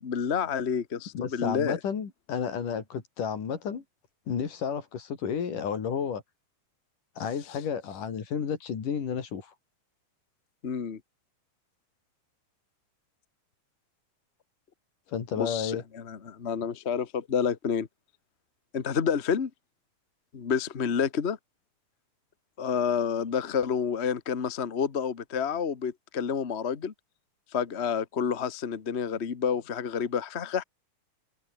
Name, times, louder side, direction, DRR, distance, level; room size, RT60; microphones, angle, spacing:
voice 1, 0.0-1.8 10.6-11.0 15.4-17.9 18.7-19.5 20.3-21.4 22.6-26.9 27.5-30.6, left 7 dB, 45° left, 0.8 m, -29 dB
voice 2, 1.1-3.8 4.3-6.2 7.2-9.5 15.1-15.8, left 7 dB, 80° left, 4.7 m, -32 dB
omnidirectional pair, 3.6 m